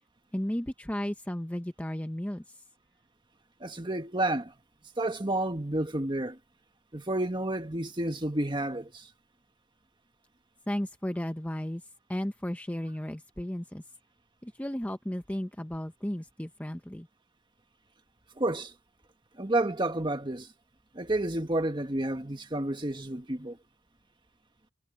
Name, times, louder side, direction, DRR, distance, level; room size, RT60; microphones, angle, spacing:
voice 1, 0.3-2.6 10.7-11.8 12.1-13.8 14.4-17.1, equal, 10° left, 0.7 m, -34 dB
voice 2, 3.6-4.5 5.0-6.4 6.9-9.1 18.4-18.7 19.4-20.5 20.9-23.6, right 1 dB, 25° right, 1.8 m, -30 dB
head